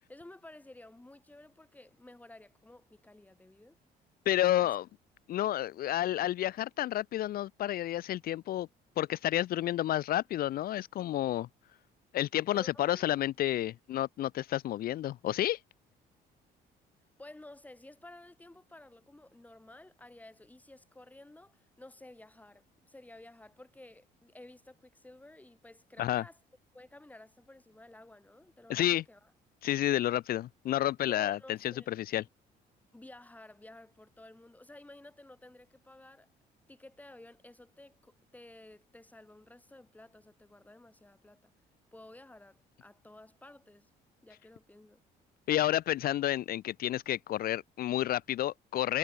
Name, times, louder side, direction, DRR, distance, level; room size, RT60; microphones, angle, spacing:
voice 1, 0.0-3.8 4.6-4.7 12.5-13.3 17.2-26.4 26.7-29.3 31.1-31.9 32.9-36.3 36.7-41.5 41.9-43.9 44.2-45.0, left 1 dB, 10° left, 5.2 m, -53 dB
voice 2, 4.3-4.9 5.3-8.7 9.0-11.5 12.1-15.6 26.0-26.2 28.7-29.0 29.6-32.2 45.5-49.0, left 13 dB, 60° left, 0.8 m, -30 dB
cardioid pair, 110°, 17 cm